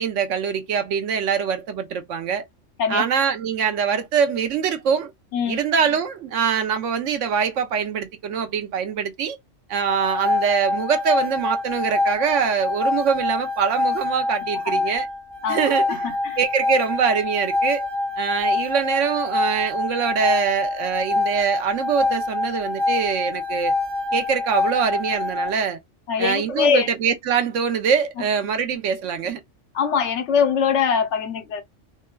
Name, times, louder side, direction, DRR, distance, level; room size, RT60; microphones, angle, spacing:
voice 1, 0.0-2.4 2.9-5.1 5.5-9.4 9.7-15.1 15.5-17.9 18.2-23.7 24.1-25.8 26.2-29.4, right 7 dB, 80° right, 1.0 m, -23 dB
sound 1, 9.7-25.5, left 3 dB, 45° right, 0.3 m, -25 dB
voice 2, 14.6-15.0 15.4-16.4 26.1-26.9 29.7-31.6, left 7 dB, 70° left, 1.0 m, -23 dB
3.7 x 2.2 x 2.3 m
omnidirectional pair, 1.3 m